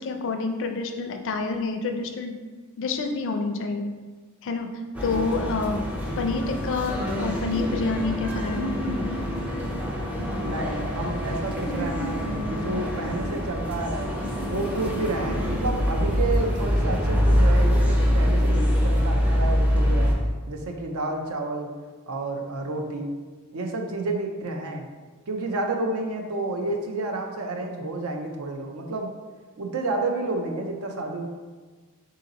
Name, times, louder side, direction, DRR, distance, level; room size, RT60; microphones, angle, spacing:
voice 1, 0.0-2.3 2.8-3.9 4.4-4.7 5.0-5.8 6.2-8.7, left 3 dB, 60° left, 5 dB, 0.4 m, -28 dB
sound 1, 4.9-20.1, equal, 5° right, 0.5 m, -24 dB
voice 2, 10.4-14.1 14.5-20.1 20.5-21.7 22.1-23.1 23.5-24.9 25.3-29.1 29.6-31.3, right 2 dB, 70° right, 3 dB, 0.6 m, -30 dB
3.7 x 2.8 x 3.9 m, 1.4 s
head